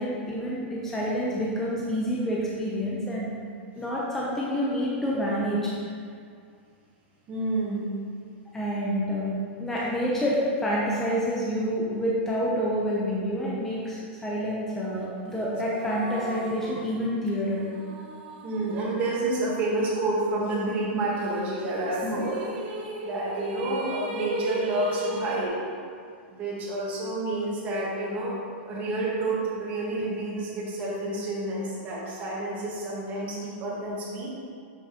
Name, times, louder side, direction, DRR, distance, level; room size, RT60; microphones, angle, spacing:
voice 1, 0.0-3.3 3.7-5.7 8.5-9.3 9.6-17.6 22.0-22.2, equal, 5° left, -6 dB, 0.7 m, -28 dB
voice 2, 7.3-7.8 18.4-22.4 23.0-25.6 26.3-28.4 28.6-34.3, right 2 dB, 25° right, -5 dB, 1.5 m, -29 dB
sound 1, 15.3-19.9 20.2-20.3 21.6-25.5, right 1 dB, 55° right, 0.9 m, -37 dB
7.1 x 5.8 x 3.0 m, 2.2 s
supercardioid pair, 160°, 6 cm